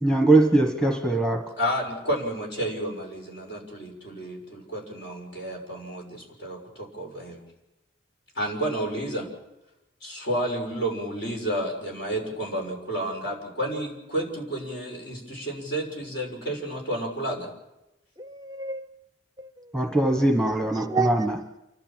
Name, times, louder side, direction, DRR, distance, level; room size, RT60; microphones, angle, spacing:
voice 1, 0.0-1.5 19.7-21.4, right 2 dB, 5° left, 3 dB, 1.4 m, -21 dB
voice 2, 1.6-7.4 8.3-9.3 10.0-17.5, right 1 dB, 60° left, 1 dB, 6.3 m, -31 dB
voice 3, 18.2-18.9 19.4-19.5 20.5-21.6, right 4 dB, 20° right, 11 dB, 0.6 m, -31 dB
29.0 x 12.5 x 7.6 m, 0.94 s
head